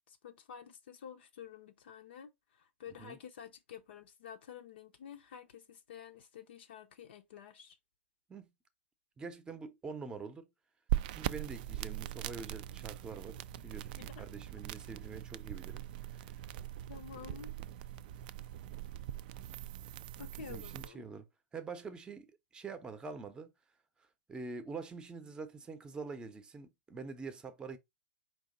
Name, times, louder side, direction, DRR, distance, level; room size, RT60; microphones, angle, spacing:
voice 1, 0.1-7.8 14.0-14.3 16.9-17.5 20.2-21.0, left 8 dB, 55° left, 0.6 m, -50 dB
voice 2, 9.2-10.5 11.1-15.8 16.1-16.3 17.3-17.4 20.4-21.3 21.5-23.5 24.3-27.8, right 4 dB, 10° right, 0.7 m, -45 dB
sound 1, 10.9-20.9, right 12 dB, 45° right, 0.3 m, -41 dB
4.6 x 2.8 x 3.8 m
figure-of-eight pair, 110°, 7 cm